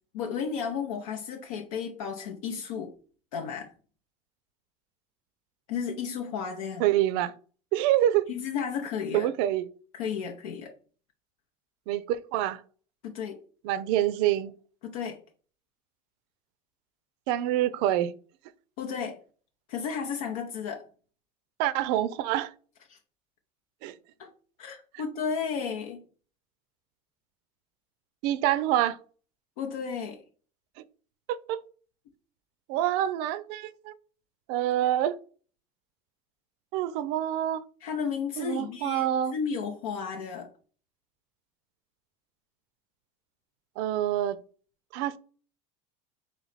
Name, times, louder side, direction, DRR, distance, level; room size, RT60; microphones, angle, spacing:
voice 1, 0.1-2.9 3.3-3.7 5.7-6.8 8.3-9.3 9.9-10.7 13.0-13.4 14.8-15.2 18.8-19.2 19.7-20.8 22.9-23.0 24.2-24.3 24.6-26.0 29.6-30.2 37.8-40.5, left 6 dB, 85° left, 0.6 m, -33 dB
voice 2, 6.8-7.3 7.7-8.3 9.1-9.7 11.9-12.6 13.6-14.5 17.3-18.1 21.6-22.5 23.8-23.9 28.2-29.0 31.3-31.6 32.7-33.9 34.5-35.2 36.7-37.6 38.4-39.3 43.8-44.4 44.9-45.2, right 12 dB, 65° right, 0.4 m, -26 dB
3.1 x 3.1 x 4.0 m
supercardioid pair, 105°, 18 cm